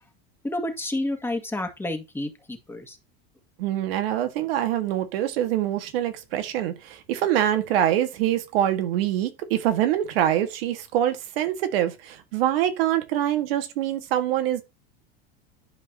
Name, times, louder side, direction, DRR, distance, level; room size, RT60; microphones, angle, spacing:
voice 1, 0.4-3.0, left 1 dB, 10° left, 1.8 m, -30 dB
voice 2, 3.6-14.6, right 11 dB, 75° right, 1.7 m, -24 dB
11.5 x 5.1 x 2.8 m
supercardioid pair, 105°, 30 cm